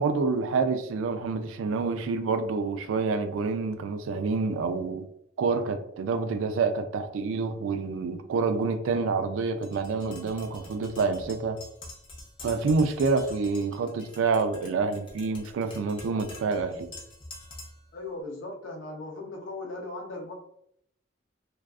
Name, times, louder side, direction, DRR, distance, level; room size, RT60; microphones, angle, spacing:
voice 1, 0.0-5.1 5.4-11.6 12.4-16.9, right 4 dB, 80° right, 0.3 m, -27 dB
Tap, 9.6-17.9, left 2 dB, 25° left, 0.4 m, -46 dB
voice 2, 17.9-20.3, left 2 dB, 75° left, 0.6 m, -38 dB
2.4 x 2.3 x 2.3 m
head